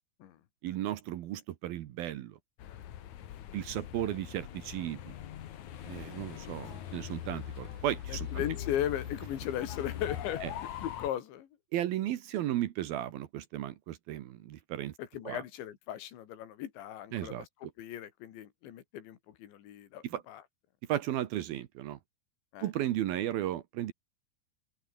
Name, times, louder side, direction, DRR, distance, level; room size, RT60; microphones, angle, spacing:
voice 1, 0.6-2.4 3.5-5.1 5.9-8.4 10.4-10.5 11.7-14.9 15.2-15.4 17.1-17.5 20.0-20.2 20.9-22.0 22.6-23.9, right 13 dB, 70° right, 2.6 m, -35 dB
sound 1, 2.6-11.1, left 11 dB, 60° left, 2.1 m, -42 dB
Ocean, 5.7-11.0, right 9 dB, 90° right, 5.1 m, -58 dB
voice 2, 8.3-10.4 10.8-11.5 15.1-17.4 17.8-20.4 22.5-22.7, left 11 dB, 80° left, 4.4 m, -37 dB
open air
omnidirectional pair, 5.1 m